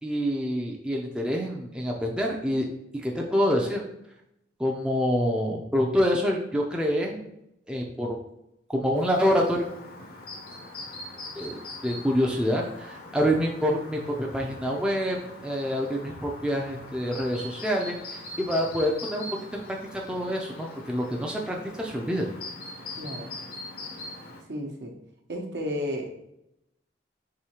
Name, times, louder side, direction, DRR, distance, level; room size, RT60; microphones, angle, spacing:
voice 1, 0.0-2.6 3.0-3.8 4.6-7.2 7.7-8.1 8.7-9.7 11.4-15.2 15.4-22.3, equal, 5° right, -1 dB, 0.4 m, -27 dB
Chirp tweet, 8.9-24.4, left 2 dB, 55° left, 0.7 m, -42 dB
voice 2, 22.9-23.3 24.5-24.9 25.3-26.3, equal, 70° right, 1 dB, 0.9 m, -33 dB
4.8 x 3.1 x 2.9 m, 0.82 s
head